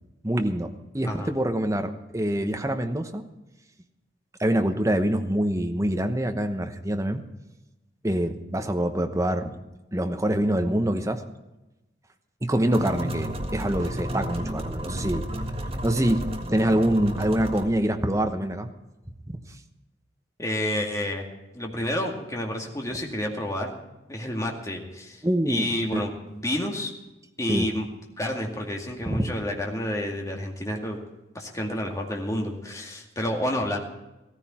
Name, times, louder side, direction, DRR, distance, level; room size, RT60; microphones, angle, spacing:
voice 1, 0.2-3.2 4.4-7.2 8.0-9.5 9.9-11.2 12.4-15.2 15.8-16.3 16.5-18.7 19.3-19.4 25.2-26.0 27.5-27.7 29.1-29.3, right 1 dB, 15° right, 6 dB, 1.1 m, -25 dB
sound 1, 12.7-17.7, equal, 30° right, 1.7 m, -32 dB
voice 2, 20.4-21.2 21.5-23.8 24.1-26.9 27.4-27.9 28.2-31.0 31.3-33.8, left 1 dB, 15° left, 1 dB, 2.2 m, -29 dB
15.5 x 14.5 x 4.4 m, 0.99 s
head